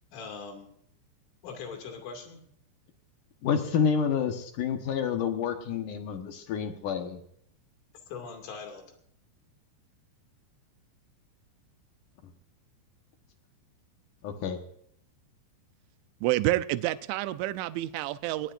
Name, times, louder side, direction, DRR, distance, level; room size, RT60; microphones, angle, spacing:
voice 1, 0.1-0.7 1.4-2.4 8.1-8.8, left 5 dB, 85° left, 4 dB, 4.9 m, -41 dB
voice 2, 3.4-7.2 14.2-14.6, left 7 dB, 65° left, 5 dB, 2.1 m, -29 dB
voice 3, 16.2-18.5, right 16 dB, 85° right, 12 dB, 3.0 m, -28 dB
22.0 x 19.5 x 2.6 m, 0.71 s
omnidirectional pair, 5.4 m